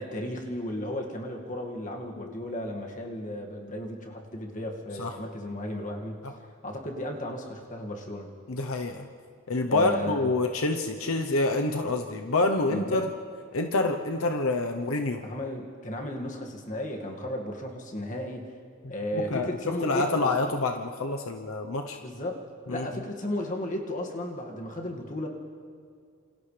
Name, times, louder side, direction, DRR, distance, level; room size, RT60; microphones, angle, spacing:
voice 1, 0.0-6.2 6.6-8.3 9.7-10.3 12.7-13.0 15.2-18.5 18.9-20.3 22.0-22.4 22.7-25.3, left 1 dB, 35° left, 1 dB, 2.1 m, -34 dB
voice 2, 8.5-9.1 9.5-13.1 13.5-15.2 18.8-22.0 22.7-22.9, left 2 dB, 80° left, 4 dB, 0.9 m, -27 dB
28.0 x 27.5 x 3.4 m, 2.2 s
head